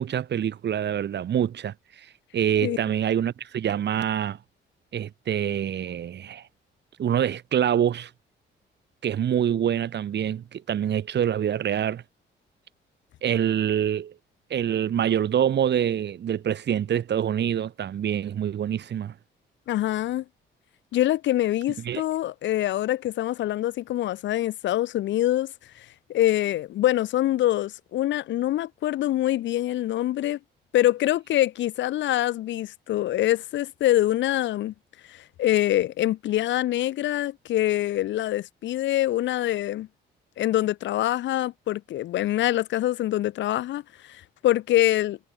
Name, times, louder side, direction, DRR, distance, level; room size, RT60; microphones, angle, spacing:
voice 1, 0.0-2.1 2.3-4.4 4.9-6.4 7.0-8.1 9.0-12.0 13.2-14.1 14.5-19.1 21.8-22.0, right 9 dB, 60° right, 2.4 m, -25 dB
voice 2, 19.7-20.2 20.9-30.4 30.7-34.7 35.1-39.9 40.4-45.2, left 14 dB, 70° left, 0.6 m, -25 dB
cardioid pair, 90°, 20 cm